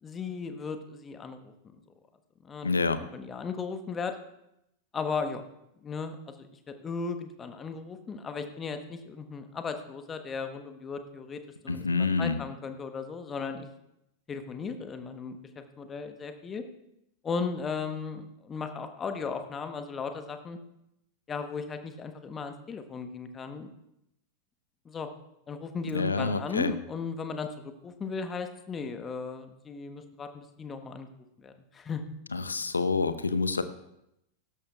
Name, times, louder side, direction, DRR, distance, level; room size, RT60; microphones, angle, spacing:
voice 1, 0.0-1.5 2.4-2.7 3.1-4.1 4.9-5.4 5.8-6.5 6.8-11.4 11.6-13.7 14.3-16.6 17.2-20.6 21.3-23.7 24.8-25.1 25.5-31.1 31.4-32.0, left 5 dB, 20° left, 8 dB, 1.1 m, -36 dB
voice 2, 2.6-3.0 11.7-12.4 25.9-26.7 32.3-33.6, left 4 dB, 75° left, 13 dB, 0.7 m, -27 dB
16.5 x 12.5 x 2.4 m, 0.83 s
figure-of-eight pair, 90°, 0 cm